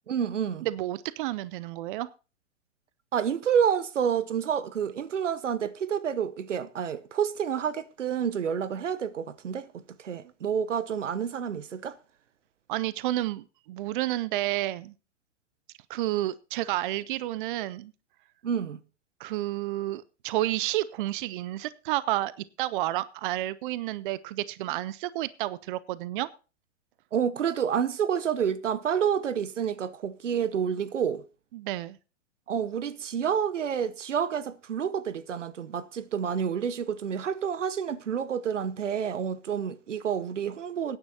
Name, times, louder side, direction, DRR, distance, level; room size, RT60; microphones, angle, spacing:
voice 1, 0.1-0.7 3.1-12.0 18.4-18.8 27.1-31.2 32.5-41.0, right 8 dB, 85° right, 0.9 m, -29 dB
voice 2, 0.6-2.1 12.7-14.9 15.9-17.9 19.2-22.3 22.6-26.3 31.5-32.0, right 15 dB, 45° right, 0.5 m, -30 dB
22.5 x 9.8 x 2.8 m
hypercardioid pair, 120°, 36 cm